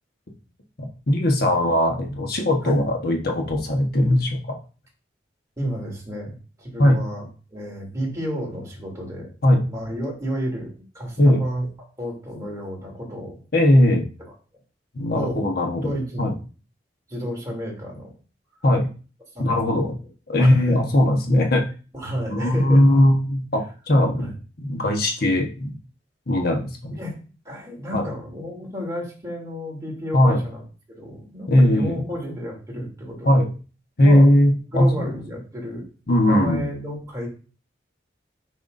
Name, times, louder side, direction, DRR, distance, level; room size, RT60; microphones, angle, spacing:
voice 1, 0.8-4.5 6.8-7.0 9.4-9.6 11.2-11.4 13.5-14.1 14.9-15.9 16.2-16.3 18.6-18.9 19.4-19.9 20.3-21.7 22.3-24.3 24.6-25.7 26.3-27.0 27.9-28.1 30.1-30.4 31.5-32.0 33.2-33.5 34.0-35.1 36.1-36.6, left 1 dB, 60° left, 2 dB, 1.3 m, -19 dB
voice 2, 5.6-7.2 7.5-9.3 9.7-11.7 12.0-13.4 15.1-15.4 15.8-16.3 17.1-18.1 19.3-19.9 20.4-20.9 21.9-23.0 24.2-24.3 27.0-27.1 27.4-30.6 30.9-33.5 34.0-34.3 34.7-35.8 36.2-37.3, equal, 20° right, -2 dB, 3.1 m, -31 dB
9.4 x 5.8 x 2.7 m, 0.36 s
head